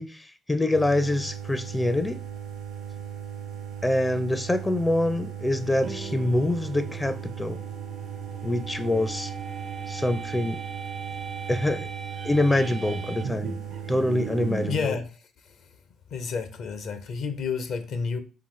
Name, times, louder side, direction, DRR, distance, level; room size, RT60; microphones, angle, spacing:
voice 1, 0.0-2.2 3.8-7.6 8.4-9.3 9.9-10.6 11.5-11.9 12.2-13.6 13.9-15.0, left 1 dB, 15° left, 0.4 m, -25 dB
sound 1, 0.7-14.9, right 9 dB, 75° right, 1.0 m, -38 dB
sound 2, 5.6-14.8, right 5 dB, 55° right, 0.5 m, -38 dB
voice 2, 14.7-15.7 16.1-18.2, left 5 dB, 60° left, 0.6 m, -31 dB
3.9 x 3.6 x 3.1 m
hypercardioid pair, 45°, 0 cm